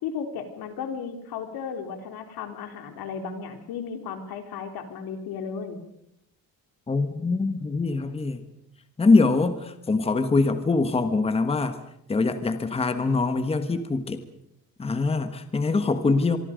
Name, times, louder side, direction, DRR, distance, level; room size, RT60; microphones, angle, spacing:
voice 1, 0.0-5.8, left 6 dB, 85° left, 6 dB, 3.6 m, -35 dB
voice 2, 6.9-8.4 9.0-11.8 12.1-14.2 14.8-16.4, left 3 dB, 15° left, 9 dB, 1.3 m, -23 dB
25.5 x 24.0 x 5.2 m, 0.77 s
cardioid pair, 160°, 36 cm